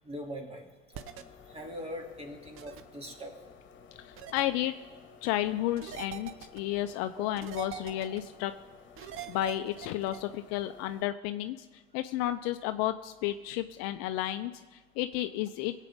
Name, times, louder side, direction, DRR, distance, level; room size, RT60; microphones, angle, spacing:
voice 1, 0.0-0.7 1.5-3.4 7.1-7.3, equal, 20° right, 2 dB, 2.4 m, -41 dB
sound 1, 0.9-11.0, left 6 dB, 40° left, 1.4 m, -54 dB
sound 2, 0.9-1.2 2.6-2.8 4.2-4.4 5.8-6.6 7.4-8.2 9.0-10.2, right 10 dB, 45° right, 0.8 m, -43 dB
voice 2, 4.0-4.7 5.2-8.5 9.0-11.7 11.9-15.7, left 13 dB, 55° left, 10 dB, 0.6 m, -32 dB
sound 3, 7.7-8.3, right 2 dB, 75° right, 2.9 m, -52 dB
21.0 x 8.3 x 3.5 m, 1.3 s
hypercardioid pair, 75°, 29 cm